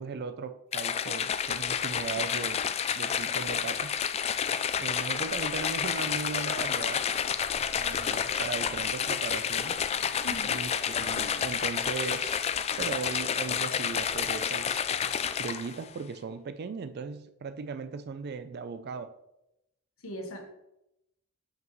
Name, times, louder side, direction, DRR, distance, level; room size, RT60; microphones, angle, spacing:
voice 1, 0.0-2.6 3.0-4.4 4.8-7.1 7.7-9.9 10.4-14.9 15.4-19.1, right 5 dB, 50° right, 11 dB, 0.4 m, -38 dB
sound 1, 0.7-15.8, left 8 dB, 30° left, 0.3 m, -30 dB
voice 2, 10.2-10.6 20.0-20.4, equal, 85° left, 3 dB, 1.3 m, -38 dB
7.5 x 5.6 x 3.0 m, 0.86 s
head